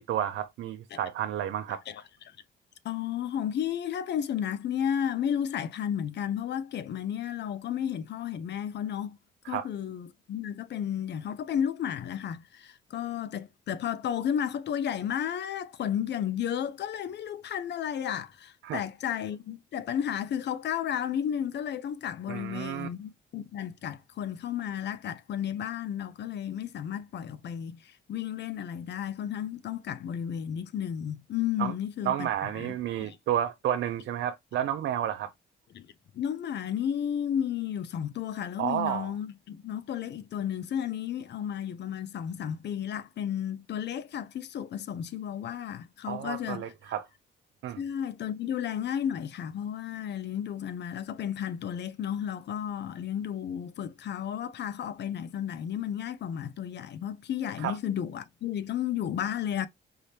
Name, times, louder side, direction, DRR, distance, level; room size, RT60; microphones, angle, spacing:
voice 1, 0.0-1.8 9.4-9.7 18.6-18.9 22.3-22.9 31.6-31.7 32.0-35.3 38.6-39.1 46.1-47.1 47.6-47.8 57.6-57.8, right 10 dB, 75° right, 0.6 m, -31 dB
voice 2, 2.8-9.2 9.5-32.3 33.0-33.2 35.7-35.9 36.1-46.6 47.8-59.7, left 9 dB, 60° left, 0.6 m, -33 dB
4.7 x 3.3 x 2.8 m
cardioid pair, 90°, 20 cm